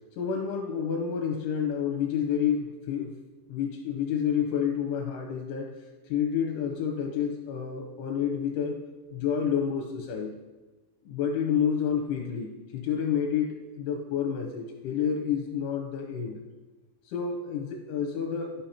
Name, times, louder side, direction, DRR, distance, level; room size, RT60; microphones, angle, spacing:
voice 1, 0.2-3.1 3.5-5.7 6.1-8.8 9.1-10.4 11.0-16.4 17.1-18.5, left 7 dB, 85° left, 2 dB, 2.8 m, -29 dB
13.0 x 5.3 x 2.8 m, 1.2 s
omnidirectional pair, 5.9 m